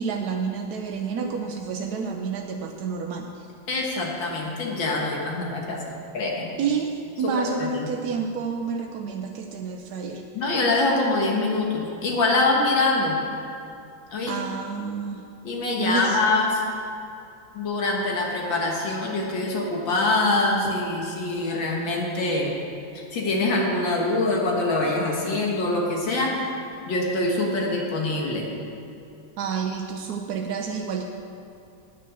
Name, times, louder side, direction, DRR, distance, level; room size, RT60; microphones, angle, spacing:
voice 1, 0.0-3.5 5.7-6.0 6.6-6.9 7.2-10.2 14.3-15.2 15.8-16.2 19.5-19.6 20.6-20.7 29.4-31.0, right 5 dB, 70° right, 3 dB, 1.0 m, -29 dB
voice 2, 3.7-5.8 6.1-6.5 7.2-7.9 10.3-13.2 14.1-14.4 15.4-16.6 17.5-22.5 23.0-26.5 26.9-28.5, left 2 dB, 70° left, -1 dB, 2.3 m, -24 dB
9.5 x 8.9 x 6.2 m, 2.7 s
omnidirectional pair, 2.2 m